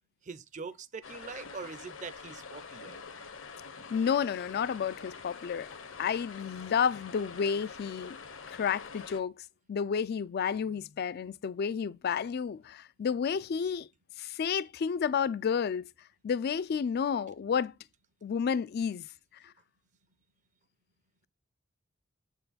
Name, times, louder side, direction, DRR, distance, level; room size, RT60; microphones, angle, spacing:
voice 1, 0.3-3.0, right 5 dB, 40° right, 0.5 m, -43 dB
sound 1, 1.0-9.2, left 5 dB, 75° left, 1.2 m, -46 dB
voice 2, 3.9-5.7 6.0-8.2 8.5-9.3 9.7-13.9 14.2-15.9 16.2-17.7 18.2-19.1, left 7 dB, 50° left, 0.3 m, -31 dB
7.5 x 4.5 x 4.0 m
head